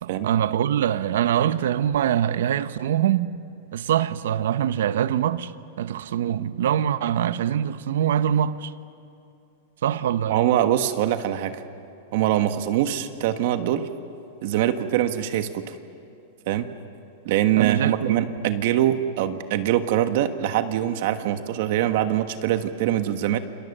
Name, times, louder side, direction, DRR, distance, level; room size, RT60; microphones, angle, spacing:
voice 1, 0.0-3.3 3.7-5.5 5.8-8.7 9.8-10.5 17.6-18.2, right 10 dB, 80° right, 0.9 m, -23 dB
voice 2, 10.3-11.6 12.1-13.9 14.4-15.7 16.5-16.7 17.2-23.4, right 12 dB, 55° right, 1.4 m, -23 dB
29.0 x 26.5 x 6.8 m
supercardioid pair, 160°, 0 cm